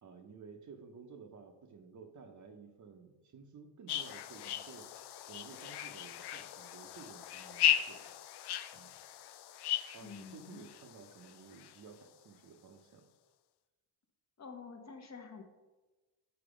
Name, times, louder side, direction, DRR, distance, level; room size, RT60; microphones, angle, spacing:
voice 1, 0.0-8.1 8.7-9.0 9.9-13.1, right 5 dB, 40° right, 6 dB, 0.7 m, -54 dB
sound 1, 3.9-12.1, left 12 dB, 60° left, 0.5 m, -37 dB
voice 2, 10.0-10.7 14.4-15.4, left 5 dB, 35° left, 5 dB, 0.8 m, -48 dB
7.0 x 4.2 x 5.0 m, 1.2 s
cardioid pair, 125°, 45 cm